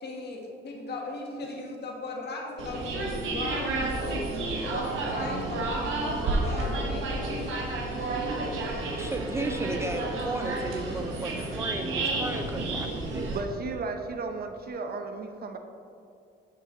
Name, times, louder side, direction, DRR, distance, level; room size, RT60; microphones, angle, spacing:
voice 1, 0.0-7.6, left 2 dB, 55° left, 0 dB, 1.5 m, -38 dB
sound 1, 2.6-13.4, right 2 dB, 80° right, 1.3 m, -30 dB
voice 2, 9.0-13.3, right 2 dB, 15° right, 5 dB, 0.3 m, -35 dB
voice 3, 13.3-15.6, right 4 dB, 50° right, 6 dB, 0.7 m, -34 dB
7.4 x 5.8 x 3.9 m, 2.5 s
cardioid pair, 90°, 20 cm